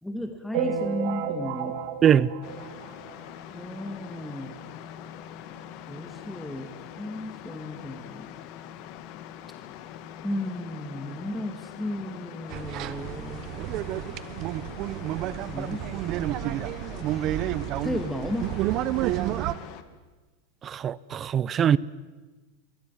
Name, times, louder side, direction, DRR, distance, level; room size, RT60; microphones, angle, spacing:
voice 1, 0.0-1.8 3.5-4.6 5.9-8.3 10.2-13.5 15.5-16.1 17.1-17.3 17.8-18.5, left 1 dB, 5° left, 2.5 m, -34 dB
sound 1, 0.5-3.4 3.9-4.0 4.1-4.3 4.6-4.7 5.6-5.7 6.1-6.2, right 7 dB, 65° right, 2.8 m, -32 dB
sound 2, 2.4-19.8, left 10 dB, 55° left, 2.1 m, -43 dB
sound 3, 12.5-19.5, right 14 dB, 50° right, 1.1 m, -30 dB
voice 2, 20.6-21.8, right 9 dB, 30° right, 0.7 m, -21 dB
26.5 x 23.5 x 7.7 m
hypercardioid pair, 115°, 0 cm